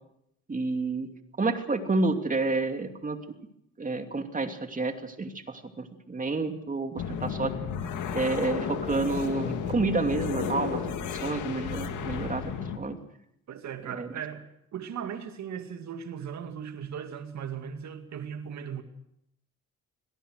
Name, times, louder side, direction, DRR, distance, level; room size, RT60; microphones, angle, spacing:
voice 1, 0.5-1.1 1.4-3.2 3.8-7.5 8.1-10.8 11.1-12.5 12.8-13.0 13.9-14.1, right 3 dB, 25° right, 2.8 m, -29 dB
sound 1, 7.0-12.8, left 7 dB, 80° left, 2.4 m, -33 dB
voice 2, 13.5-18.8, right 8 dB, 65° right, 2.4 m, -38 dB
25.0 x 18.5 x 6.6 m
cardioid pair, 90°, 30 cm